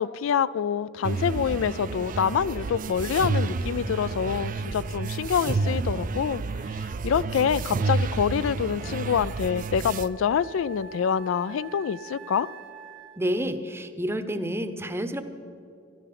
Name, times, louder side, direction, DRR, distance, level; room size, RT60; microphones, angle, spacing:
voice 1, 0.0-6.4 7.0-12.5, left 7 dB, 80° left, 18 dB, 0.3 m, -26 dB
sound 1, 1.0-10.1, right 3 dB, 40° right, 0.4 m, -30 dB
Wind instrument woodwind instrument, 8.8-13.4, right 5 dB, 85° right, 2.2 m, -46 dB
voice 2, 13.2-15.2, equal, 10° right, 10 dB, 0.7 m, -29 dB
14.0 x 13.0 x 5.9 m, 2.7 s
head